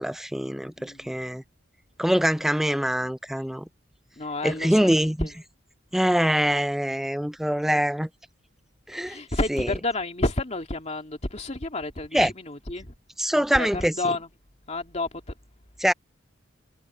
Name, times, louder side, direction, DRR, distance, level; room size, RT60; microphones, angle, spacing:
voice 1, 0.0-1.4 2.0-3.7 4.4-5.3 5.9-8.1 8.9-9.2 9.5-9.7 12.1-12.3 13.2-13.9 15.8-15.9, equal, ahead, 0.3 m, -24 dB
voice 2, 0.8-1.2 4.2-4.9 5.2-5.3 9.0-12.9 13.3-14.3 14.7-15.2, left 2 dB, 35° left, 2.5 m, -30 dB
head